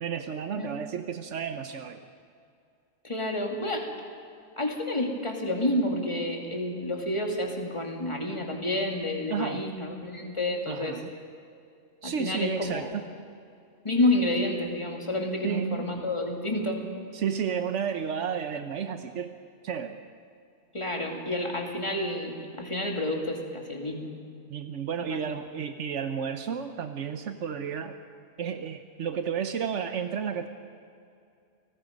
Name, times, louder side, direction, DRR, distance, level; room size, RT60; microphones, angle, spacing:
voice 1, 0.0-2.0 9.3-9.6 10.7-11.1 12.0-13.1 15.4-15.9 17.1-19.3 19.6-20.0 24.5-28.0 28.4-30.5, right 7 dB, 85° right, 7 dB, 1.2 m, -32 dB
voice 2, 3.0-3.9 4.6-11.0 12.0-12.9 13.8-16.8 20.7-24.1 25.1-25.4, left 1 dB, 25° left, 1 dB, 2.8 m, -29 dB
30.0 x 19.0 x 5.3 m, 2.4 s
omnidirectional pair, 1.2 m